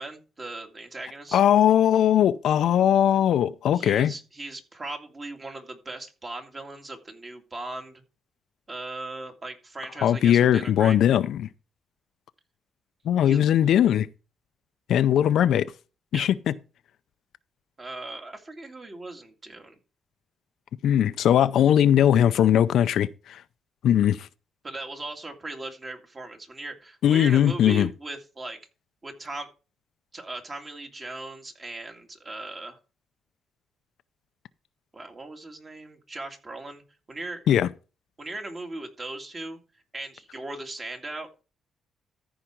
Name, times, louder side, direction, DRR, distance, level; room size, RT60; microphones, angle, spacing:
voice 1, 0.0-1.4 3.7-8.0 8.7-11.0 13.2-13.4 16.1-16.3 17.8-19.8 24.6-28.6 29.0-29.5 30.1-32.8 34.9-36.8 37.1-37.4 38.2-39.6 39.9-41.4, right 2 dB, 30° right, 2.2 m, -38 dB
voice 2, 1.3-4.1 10.0-11.5 13.1-14.1 14.9-15.7 16.1-16.5 20.8-23.4 23.8-24.3 27.0-27.9 37.5-37.7, left 10 dB, 75° left, 0.5 m, -20 dB
14.0 x 5.0 x 4.4 m
cardioid pair, 90°, 0 cm